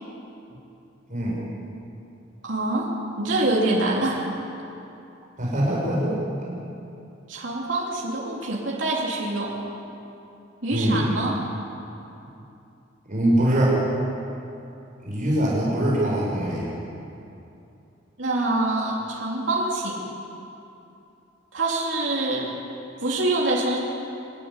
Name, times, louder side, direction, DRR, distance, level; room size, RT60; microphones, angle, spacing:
voice 1, 2.4-2.9 3.2-4.2 7.3-9.6 10.6-11.4 18.2-20.0 21.5-22.5 23.0-23.8, right 2 dB, 80° right, -4 dB, 3.4 m, -25 dB
voice 2, 5.4-6.2 6.4-6.6 10.7-11.1 13.1-13.8 15.0-16.7, right 1 dB, 45° right, -5 dB, 6.0 m, -23 dB
26.0 x 13.0 x 10.0 m, 2.8 s
head